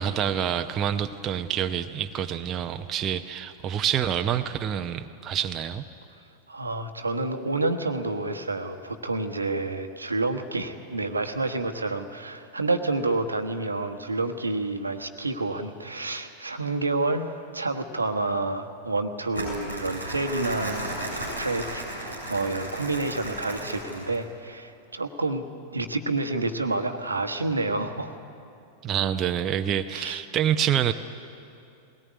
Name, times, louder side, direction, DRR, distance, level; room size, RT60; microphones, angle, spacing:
voice 1, 0.0-5.8 28.8-30.9, right 9 dB, 30° right, 7 dB, 0.7 m, -27 dB
voice 2, 6.5-20.9 21.4-25.4 25.7-28.2 29.9-30.2, right 2 dB, 80° right, 7 dB, 1.2 m, -29 dB
Crumpling crinkling, 19.3-24.2, right 1 dB, 85° left, 7.2 m, -34 dB
21.0 x 18.0 x 9.6 m, 2.6 s
figure-of-eight pair, 90°, 0 cm